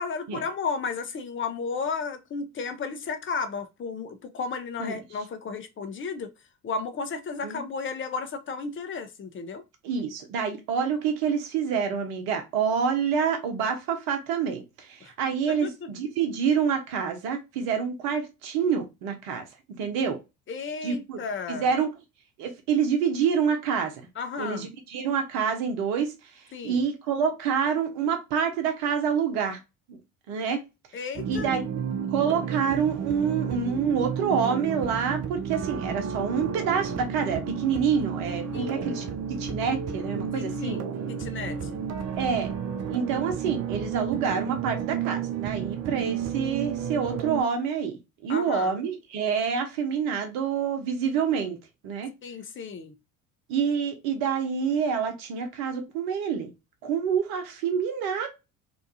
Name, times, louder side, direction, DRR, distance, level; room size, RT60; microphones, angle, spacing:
voice 1, 0.0-6.3 6.6-9.6 15.0-15.1 15.5-15.7 20.5-21.7 24.2-24.7 26.5-26.9 30.9-31.5 38.5-38.9 40.3-41.7 48.3-48.7 52.2-53.0, left 5 dB, 30° left, 0.6 m, -33 dB
voice 2, 9.8-19.4 19.8-20.2 20.8-21.2 21.5-21.9 22.4-24.0 24.4-29.6 29.9-30.0 30.3-30.6 31.3-31.6 32.1-39.0 39.4-40.8 42.2-42.5 42.9-52.1 53.5-56.5 56.8-58.3, right 6 dB, 65° right, 0.9 m, -27 dB
sound 1, 31.2-47.4, right 7 dB, 40° right, 0.5 m, -32 dB
2.7 x 2.3 x 2.6 m
hypercardioid pair, 60°, 40 cm